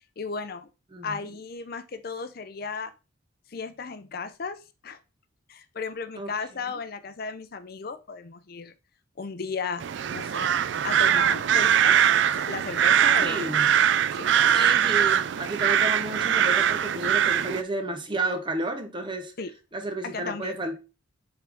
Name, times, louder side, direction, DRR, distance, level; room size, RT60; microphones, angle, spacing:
voice 1, 0.2-0.7 1.0-2.9 3.5-5.0 5.5-8.7 9.2-9.8 10.1-10.5 10.8-12.0 12.3-13.5 14.1-14.3 19.4-19.5 20.0-20.6, left 4 dB, 50° left, 0.5 m, -35 dB
sound 1, 9.8-17.6, right 9 dB, 65° right, 0.3 m, -22 dB
voice 2, 13.2-13.7 14.5-19.3 19.7-20.8, right 2 dB, 25° right, 0.9 m, -31 dB
7.5 x 3.8 x 3.4 m
head